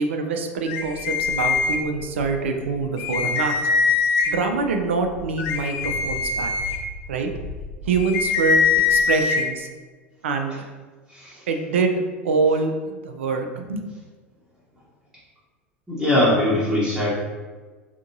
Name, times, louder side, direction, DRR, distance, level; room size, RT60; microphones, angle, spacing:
voice 1, 0.0-3.6 4.3-6.5 7.1-7.3 7.8-9.7 10.2-10.6 11.5-13.9, right 4 dB, 70° right, 5 dB, 0.4 m, -25 dB
sound 1, 0.7-2.2 2.6-2.7 3.0-4.5 5.1-9.4, left 5 dB, 50° left, 0.4 m, -23 dB
voice 2, 15.9-17.1, left 1 dB, 5° right, -9 dB, 0.9 m, -21 dB
3.4 x 2.7 x 2.6 m, 1.4 s
figure-of-eight pair, 75°, 7 cm